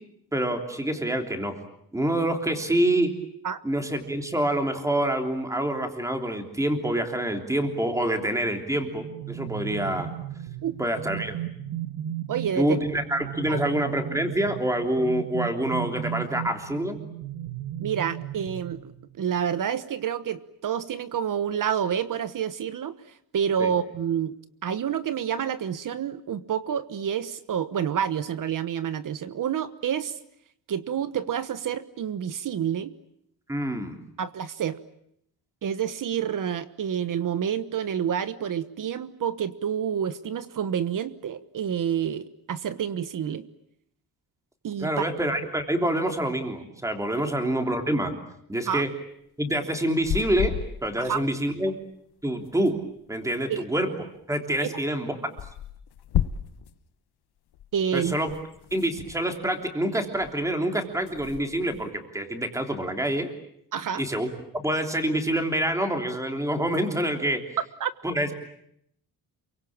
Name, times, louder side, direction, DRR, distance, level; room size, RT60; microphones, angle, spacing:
voice 1, 0.3-1.6 1.9-3.1 3.6-10.1 10.8-11.3 12.5-17.0 23.6-23.7 33.5-34.0 44.8-48.1 48.5-48.9 49.4-50.5 50.8-51.7 52.2-52.8 53.1-53.9 54.3-55.2 57.9-58.3 58.7-63.3 64.0-64.3 64.6-67.4 68.0-68.3, right 1 dB, 10° right, 5 dB, 3.3 m, -26 dB
sound 1, 8.7-19.2, right 11 dB, 85° right, 2.1 m, -36 dB
voice 2, 12.3-12.8 13.5-13.6 17.8-18.9 19.2-22.9 23.3-24.3 24.6-30.2 30.7-32.9 34.2-34.8 35.6-43.4 44.6-45.0 48.7-48.8 51.0-51.2 53.5-53.6 54.6-54.8 57.7-58.1 63.7-64.0 67.8-67.9, right 8 dB, 55° right, 13 dB, 1.2 m, -28 dB
sound 2, 49.8-51.3 51.5-51.6 51.8-51.9 52.1-53.2 54.2-54.3 54.6-54.7 55.4-56.8 57.5-59.9 60.1-60.5 60.9-62.0, left 10 dB, 75° left, 1.2 m, -34 dB
28.0 x 24.0 x 8.8 m, 0.73 s
wide cardioid pair, 165°, 39 cm